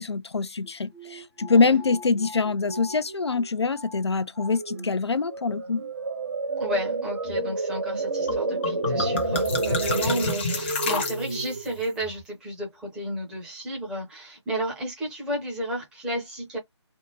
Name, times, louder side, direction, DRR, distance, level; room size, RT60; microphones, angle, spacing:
voice 1, 0.0-5.8, left 4 dB, 65° left, 0.5 m, -24 dB
sound 1, 0.6-0.7 0.9-3.5 3.7-4.0 4.4-4.9 5.3-12.2, right 3 dB, 55° right, 1.4 m, -30 dB
voice 2, 6.6-16.6, right 1 dB, 5° right, 0.8 m, -32 dB
sound 2, 8.3-8.4 8.6-11.7, left 3 dB, 25° left, 0.8 m, -29 dB
3.4 x 2.1 x 2.9 m
figure-of-eight pair, 150°, 15 cm